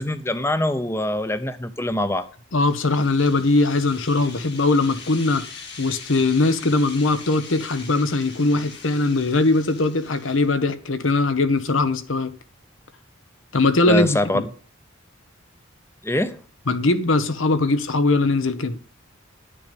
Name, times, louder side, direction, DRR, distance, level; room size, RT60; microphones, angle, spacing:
voice 1, 0.0-2.3 13.9-14.4 16.0-16.4, left 1 dB, 10° left, 0.7 m, -23 dB
voice 2, 2.5-5.4 5.8-12.4 13.5-14.4 16.7-18.8, left 2 dB, 75° left, 1.1 m, -20 dB
sound 1, 2.7-10.6, left 5 dB, 55° left, 2.3 m, -42 dB
10.5 x 6.9 x 5.2 m
head